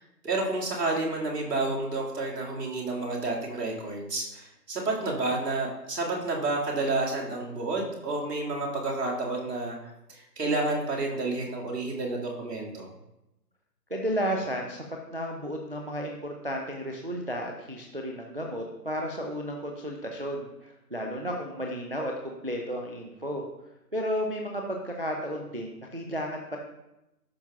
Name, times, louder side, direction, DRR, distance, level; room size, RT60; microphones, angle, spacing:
voice 1, 0.0-12.9, right 2 dB, 75° right, -2 dB, 2.3 m, -30 dB
voice 2, 13.9-14.8 15.1-23.4 23.9-26.6, equal, 40° right, 1 dB, 0.4 m, -33 dB
11.5 x 5.4 x 2.4 m, 0.90 s
hypercardioid pair, 170°, 48 cm